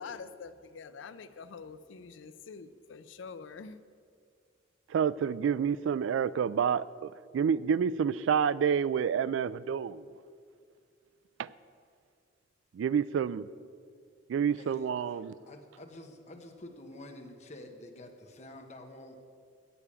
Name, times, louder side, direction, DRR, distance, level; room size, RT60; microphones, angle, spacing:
voice 1, 0.0-3.8, left 5 dB, 85° left, 13 dB, 0.5 m, -45 dB
voice 2, 4.9-10.0 11.4-11.5 12.7-13.5 14.3-15.4, right 7 dB, 85° right, 19 dB, 0.3 m, -28 dB
voice 3, 14.5-14.9 15.5-19.2, left 1 dB, 40° left, 4 dB, 1.0 m, -48 dB
8.8 x 7.0 x 8.4 m, 2.2 s
head